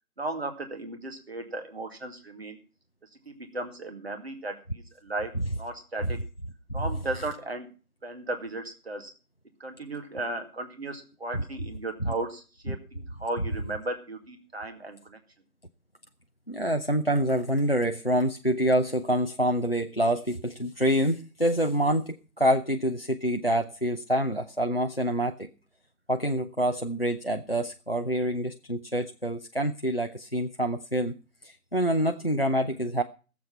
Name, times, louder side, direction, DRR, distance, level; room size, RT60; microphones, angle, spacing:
voice 1, 0.2-2.6 3.3-5.3 5.6-6.2 6.7-7.7 8.0-9.1 9.6-15.2, right 2 dB, 40° right, 6 dB, 2.3 m, -35 dB
voice 2, 16.5-25.5 26.1-31.1 31.4-33.0, equal, 40° left, 8 dB, 0.5 m, -26 dB
16.5 x 7.6 x 5.5 m, 0.35 s
figure-of-eight pair, 165°, 47 cm